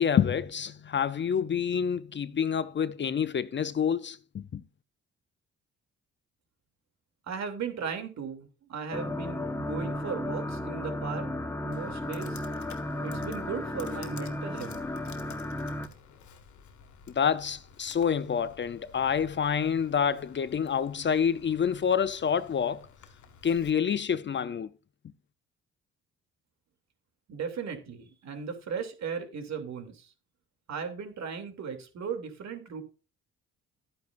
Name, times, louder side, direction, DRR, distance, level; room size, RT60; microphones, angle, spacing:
voice 1, 0.0-4.6 17.1-22.9 23.4-24.7, left 7 dB, 40° left, 0.7 m, -27 dB
voice 2, 7.3-11.3 11.6-12.4 13.0-14.8 27.3-30.1 30.7-32.8, right 6 dB, 65° right, 2.9 m, -37 dB
sound 1, 8.9-15.9, left 1 dB, 10° left, 1.3 m, -34 dB
Computer keyboard, 11.7-23.7, left 7 dB, 70° left, 1.8 m, -52 dB
12.5 x 9.4 x 2.6 m
cardioid pair, 90°, 30 cm